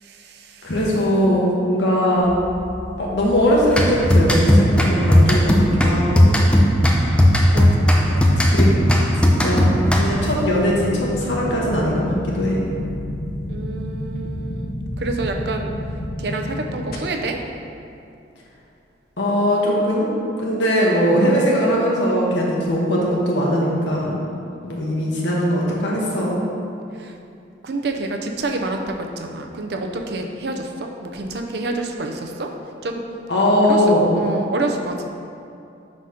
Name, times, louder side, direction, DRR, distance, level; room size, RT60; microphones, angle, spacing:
voice 1, 0.0-0.7 7.5-8.5 13.5-15.7 16.2-17.4 27.0-27.1 27.6-32.5 32.8-33.0 33.6-33.8 34.1-35.1, right 2 dB, 60° right, 3 dB, 0.5 m, -28 dB
voice 2, 0.6-2.3 3.0-6.5 8.5-8.7 9.2-9.7 10.0-12.6 19.2-24.1 24.6-26.4 33.3-34.2, equal, 80° left, -4 dB, 1.0 m, -20 dB
sound 1, 2.2-16.1, equal, 25° left, 0.8 m, -35 dB
sound 2, 3.7-10.4, equal, 5° left, 0.4 m, -16 dB
sound 3, 7.0-17.0, left 1 dB, 55° left, 0.6 m, -31 dB
4.9 x 4.0 x 5.6 m, 2.6 s
head